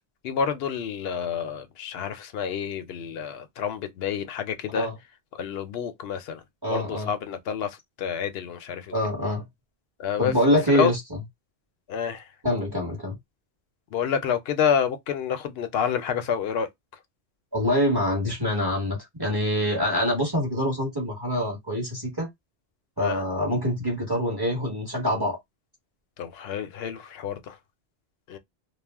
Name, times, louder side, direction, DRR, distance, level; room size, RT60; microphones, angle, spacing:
voice 1, 0.2-4.9 5.3-6.4 6.7-8.9 10.0-10.3 10.7-10.9 11.9-12.2 13.9-16.7 23.0-23.2 26.2-27.6 28.3-28.4, left 7 dB, 75° left, 0.8 m, -28 dB
voice 2, 6.6-7.1 8.9-9.4 10.2-11.0 12.4-13.2 17.5-22.3 23.0-25.4, equal, 25° right, 1.1 m, -25 dB
2.4 x 2.0 x 3.4 m
omnidirectional pair, 1.1 m